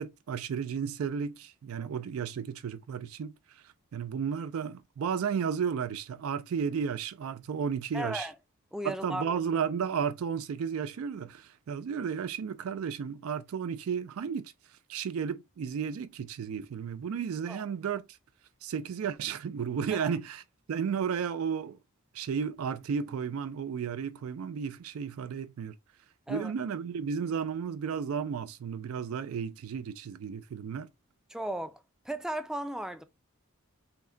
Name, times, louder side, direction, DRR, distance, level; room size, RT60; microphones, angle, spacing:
voice 1, 0.0-8.3 8.8-18.2 18.6-20.4 20.7-21.8 22.1-25.7 26.3-30.9, right 7 dB, 80° right, 0.3 m, -33 dB
voice 2, 7.9-8.3 8.7-9.2 17.5-17.6 19.9-20.2 26.3-26.5 31.3-33.0, right 1 dB, 5° right, 0.4 m, -36 dB
5.8 x 2.1 x 3.7 m
head